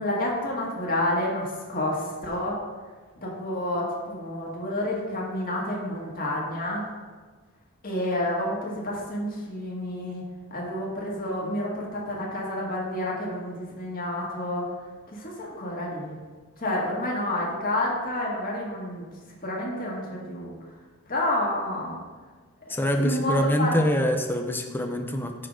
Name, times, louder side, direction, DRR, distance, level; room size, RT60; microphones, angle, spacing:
voice 1, 0.0-2.6 3.2-6.9 7.8-10.2 10.5-14.6 15.1-16.2 16.6-19.0 19.4-20.5 21.1-22.0 22.7-23.7, left 1 dB, 40° left, -4 dB, 1.8 m, -29 dB
voice 2, 22.7-25.5, equal, 10° left, 4 dB, 0.5 m, -25 dB
9.7 x 3.8 x 6.3 m, 1.4 s
head